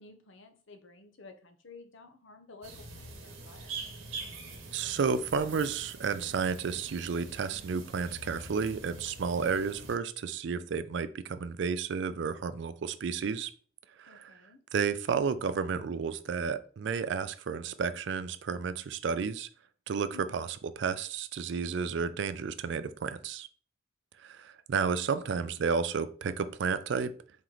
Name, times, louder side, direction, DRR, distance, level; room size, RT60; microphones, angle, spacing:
voice 1, 0.0-3.9 9.4-9.8 14.1-14.6 20.1-20.5 25.1-25.6, left 3 dB, 70° left, 0.7 m, -53 dB
sound 1, 2.6-10.0, right 3 dB, 80° right, 1.1 m, -45 dB
voice 2, 4.7-13.5 14.0-14.3 14.7-19.5 19.9-20.5 20.8-23.5 24.2-27.1, right 5 dB, 60° right, 0.3 m, -32 dB
4.3 x 3.1 x 3.9 m
head